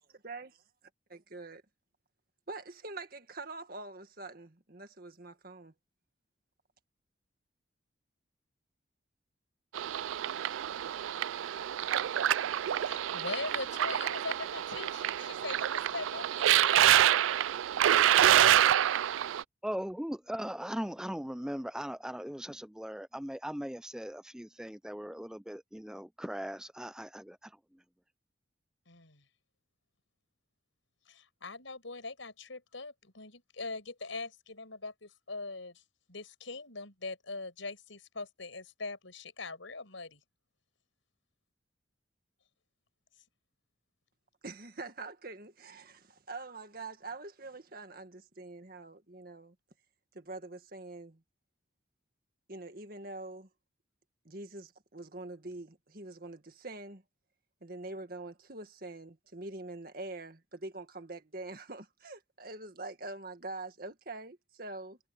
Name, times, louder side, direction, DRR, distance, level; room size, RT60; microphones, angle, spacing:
voice 1, 0.1-0.6 1.1-1.6 2.5-5.7 44.4-49.6 50.1-51.2 52.5-53.5 54.3-57.0 57.6-65.0, right 2 dB, 50° right, 2.0 m, -44 dB
sound 1, 9.7-19.4, right 11 dB, 85° right, 0.3 m, -27 dB
voice 2, 12.7-17.1 28.9-29.2 31.1-35.8 36.1-40.2, left 3 dB, 85° left, 5.7 m, -42 dB
voice 3, 19.6-27.5, equal, 5° right, 0.5 m, -39 dB
head